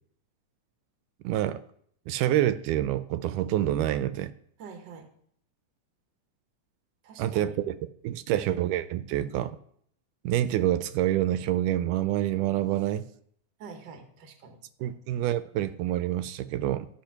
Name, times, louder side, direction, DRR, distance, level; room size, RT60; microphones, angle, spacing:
voice 1, 1.2-1.6 2.1-4.3 7.2-7.8 8.0-9.6 10.2-13.0 14.8-16.9, right 13 dB, 85° right, 2.1 m, -27 dB
voice 2, 4.6-5.1 7.0-7.6 8.1-8.4 13.6-15.0, right 5 dB, 50° right, 1.3 m, -46 dB
13.5 x 5.0 x 5.8 m
omnidirectional pair, 3.7 m